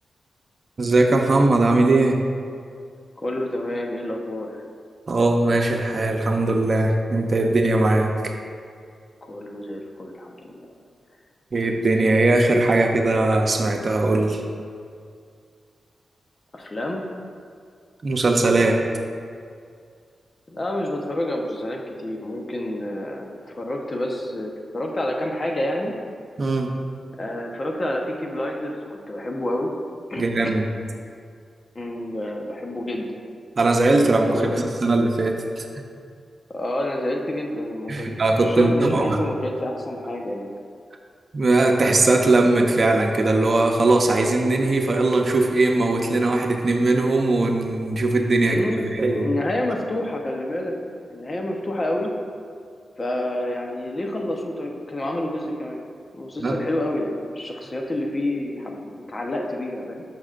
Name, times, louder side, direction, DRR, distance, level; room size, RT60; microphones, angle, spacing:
voice 1, 0.8-2.2 5.1-8.3 11.5-14.4 18.0-18.8 26.4-26.8 30.2-30.7 33.6-35.7 37.9-39.2 41.3-48.6 48.9-49.3 56.4-56.6, right 2 dB, 50° right, 3 dB, 0.8 m, -20 dB
voice 2, 3.2-4.6 9.3-10.7 16.5-17.1 20.5-25.9 27.2-29.7 30.1-30.2 31.7-33.2 34.3-34.8 36.5-38.2 38.4-40.5 48.4-52.1 53.0-55.8 56.1-60.0, left 1 dB, 40° left, 1 dB, 1.0 m, -28 dB
11.5 x 6.0 x 2.5 m, 2.2 s
cardioid pair, 60°, 0 cm